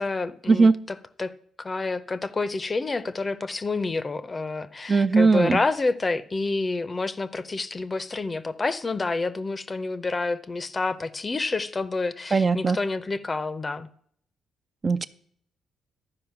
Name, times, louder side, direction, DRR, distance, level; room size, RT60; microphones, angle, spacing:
voice 1, 0.0-1.3 1.6-13.9, left 3 dB, 25° left, 0.6 m, -28 dB
voice 2, 4.9-5.6 12.3-12.8 14.8-15.1, right 4 dB, 35° right, 0.4 m, -19 dB
11.5 x 4.9 x 5.8 m
cardioid pair, 90°, 0 cm